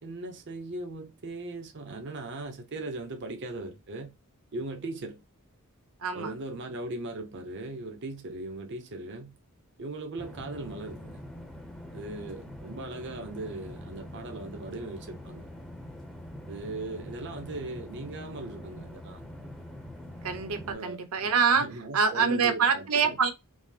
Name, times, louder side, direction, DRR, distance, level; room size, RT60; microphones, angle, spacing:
voice 1, 0.0-4.1 4.5-5.2 6.1-9.4 9.8-11.2 11.9-15.5 16.5-19.2 20.6-21.0 21.6-23.2, right 2 dB, 55° right, 0.6 m, -39 dB
voice 2, 6.0-6.3 20.2-21.7 21.9-23.3, right 5 dB, 75° right, 0.9 m, -25 dB
sound 1, 10.2-20.7, left 1 dB, ahead, 0.6 m, -44 dB
5.3 x 2.0 x 3.2 m
head